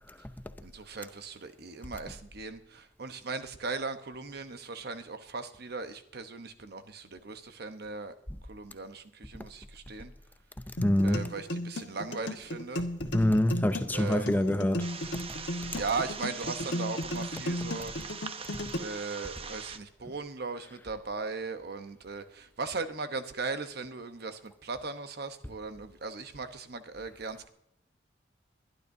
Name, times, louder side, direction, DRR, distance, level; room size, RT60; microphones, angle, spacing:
voice 1, 0.6-8.1 8.4-10.1 11.0-12.9 13.9-14.4 15.7-17.9 18.8-27.5, right 4 dB, 60° right, 1.0 m, -38 dB
sound 1, 10.8-18.8, left 1 dB, 75° left, 1.4 m, -35 dB
voice 2, 10.8-11.2 13.1-14.9 15.1-15.2, left 1 dB, 10° left, 0.6 m, -25 dB
sound 2, 14.8-19.8, right 6 dB, 35° right, 0.7 m, -42 dB
22.5 x 11.5 x 2.7 m
head